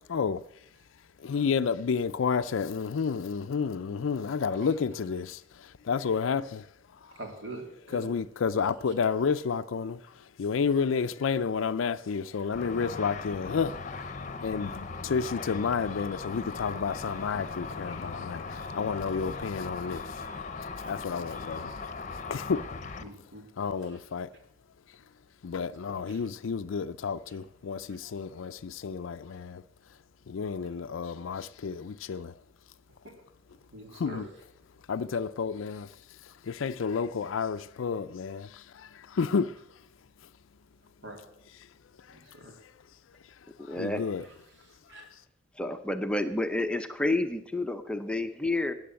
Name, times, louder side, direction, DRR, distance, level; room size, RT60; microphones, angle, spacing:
voice 1, 0.1-0.5 1.2-6.7 7.0-7.2 7.9-14.1 14.4-21.8 22.3-22.7 23.6-24.3 25.4-29.6 30.3-32.4 33.9-34.3 34.9-39.6 42.0-42.2 42.6-42.7 43.6-44.2 44.9-45.0, left 5 dB, 80° left, 0.4 m, -31 dB
voice 2, 7.1-8.1 21.2-21.4 23.0-23.4 25.9-26.2 33.0-33.1 33.7-34.2 41.0-41.2 42.1-42.6 44.2-44.3 44.7-45.1, right 2 dB, 65° right, 3.0 m, -44 dB
Car / Traffic noise roadway noise / Engine, 12.5-23.0, left 4 dB, 40° left, 0.8 m, -39 dB
voice 3, 43.7-44.0 45.6-48.7, left 2 dB, 5° left, 0.7 m, -29 dB
14.0 x 9.6 x 7.6 m
head